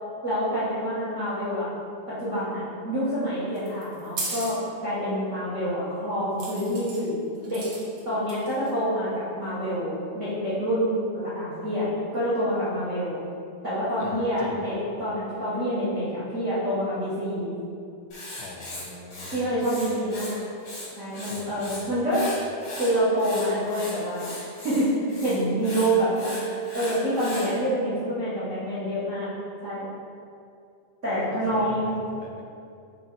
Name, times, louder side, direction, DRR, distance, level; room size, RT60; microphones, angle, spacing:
voice 1, 0.2-1.7 2.1-7.2 7.4-7.6 8.0-11.9 12.1-13.2 13.6-17.5 19.3-20.4 21.0-22.3 22.8-24.3 24.6-26.3 26.7-29.3 29.6-29.9 31.0-31.9, equal, 85° right, -11 dB, 0.6 m, -27 dB
sound 1, 3.6-4.6 6.4-7.0 7.4-8.0 8.3-8.7, right 3 dB, 60° right, 1.4 m, -35 dB
voice 2, 14.0-14.6 18.4-19.6 21.3-22.0 31.5-32.4, left 4 dB, 80° left, 1 dB, 2.0 m, -44 dB
Writing, 18.1-20.3 20.6-21.8 22.1-27.5, left 1 dB, 60° left, 0.7 m, -38 dB
8.0 x 3.5 x 3.8 m, 2.5 s
omnidirectional pair, 3.7 m